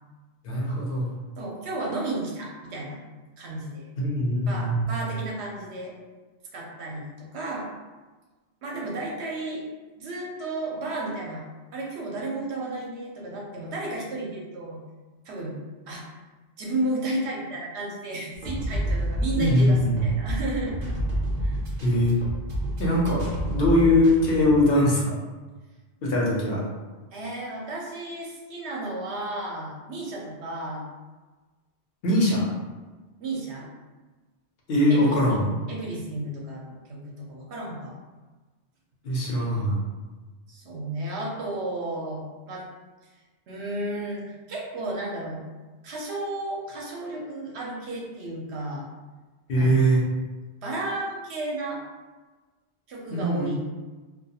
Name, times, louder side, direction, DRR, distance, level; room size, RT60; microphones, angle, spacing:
voice 1, 0.4-1.1 4.0-5.0 19.3-20.0 21.8-22.2 22.8-25.1 26.0-26.6 32.0-32.5 34.7-35.4 39.0-39.8 49.5-50.1 53.1-53.6, left 1 dB, 60° left, -4 dB, 0.8 m, -22 dB
voice 2, 1.4-3.0 3.4-3.9 4.5-5.9 6.5-7.7 8.6-9.7 10.0-11.4 11.7-14.8 15.2-15.6 15.9-16.0 16.6-20.7 21.4-21.6 27.1-30.8 33.2-33.7 34.9-38.0 40.5-42.7 43.5-45.4 45.8-48.9 49.5-49.8 50.6-51.8 52.9-53.6, right 2 dB, 75° right, -2 dB, 0.8 m, -33 dB
sound 1, 18.3-24.6, equal, 45° right, 0.6 m, -29 dB
2.3 x 2.3 x 2.8 m, 1.3 s
omnidirectional pair, 1.2 m